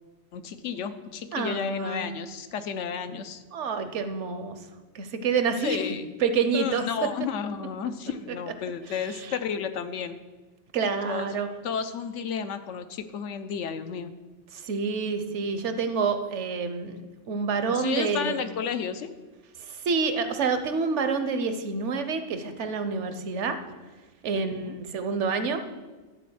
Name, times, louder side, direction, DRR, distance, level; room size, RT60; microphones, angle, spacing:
voice 1, 0.3-3.4 5.6-6.0 6.5-10.2 11.0-11.3 11.6-14.1 17.7-19.1 24.4-24.8, left 7 dB, 80° left, 10 dB, 1.0 m, -32 dB
voice 2, 1.3-2.1 3.5-4.6 4.9-5.8 6.2-7.1 9.1-9.3 10.7-11.5 14.5-17.0 17.3-18.4 19.6-23.6 24.2-25.6, right 5 dB, 75° right, 8 dB, 1.1 m, -28 dB
11.5 x 4.1 x 7.8 m, 1.3 s
omnidirectional pair, 1.2 m